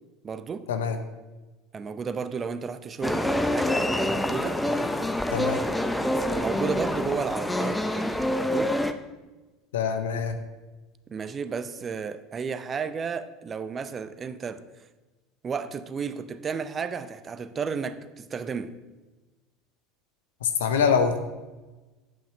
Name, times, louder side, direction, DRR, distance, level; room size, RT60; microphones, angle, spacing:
voice 1, 0.2-0.7 1.7-4.6 5.9-8.8 11.1-14.6 15.4-18.8, right 6 dB, 30° right, 0.7 m, -33 dB
sound 1, 3.0-8.9, left 1 dB, 5° left, 0.7 m, -26 dB
voice 2, 9.7-10.4 20.4-21.2, left 6 dB, 75° left, 0.9 m, -24 dB
8.9 x 5.8 x 6.7 m
figure-of-eight pair, 75°, 0 cm